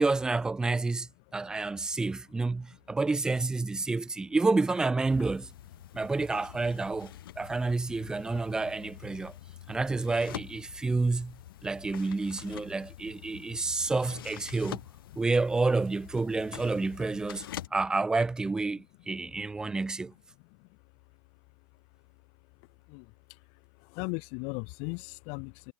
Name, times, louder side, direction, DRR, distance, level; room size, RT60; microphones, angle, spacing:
voice 1, 0.0-5.5 5.9-9.3 9.7-11.3 11.6-14.8 15.2-20.1, right 3 dB, 5° right, 0.4 m, -29 dB
sound 1, 5.1-17.7, left 12 dB, 75° left, 4.0 m, -46 dB
voice 2, 9.2-9.6 10.8-11.0 13.3-13.7 15.2-15.3 17.5-17.6 19.3-19.4 19.7-19.8 20.6-20.8 22.9-23.4 23.7-25.7, left 40 dB or more, 40° left, 0.8 m, -40 dB
supercardioid pair, 145°, 12 cm